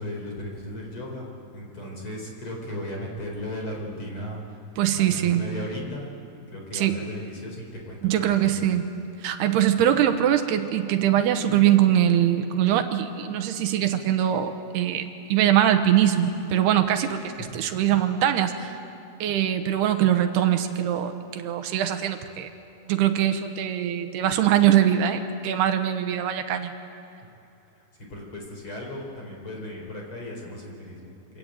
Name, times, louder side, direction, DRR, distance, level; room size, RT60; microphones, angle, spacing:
voice 1, 0.0-4.4 4.7-6.1 6.5-8.7 17.4-17.6 27.8-31.4, left 1 dB, 30° left, 0 dB, 4.8 m, -36 dB
voice 2, 4.8-5.4 6.7-7.0 8.0-8.9 9.2-18.7 19.2-22.5 22.9-26.7, right 11 dB, 80° right, 7 dB, 3.0 m, -22 dB
26.0 x 23.5 x 8.9 m, 2.7 s
omnidirectional pair, 4.8 m